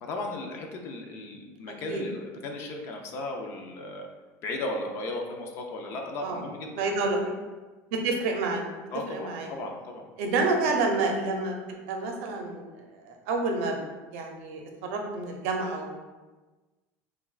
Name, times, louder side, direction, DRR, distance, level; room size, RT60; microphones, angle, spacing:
voice 1, 0.0-4.1 4.4-6.8 8.9-10.1, left 2 dB, 35° left, 3 dB, 0.4 m, -36 dB
voice 2, 6.7-7.3 7.9-8.6 9.1-9.5 10.2-11.6 11.9-12.6 12.9-13.8 14.1-16.0, right 3 dB, 70° right, 2 dB, 0.6 m, -28 dB
5.9 x 2.2 x 2.4 m, 1.2 s
cardioid pair, 180°, 7 cm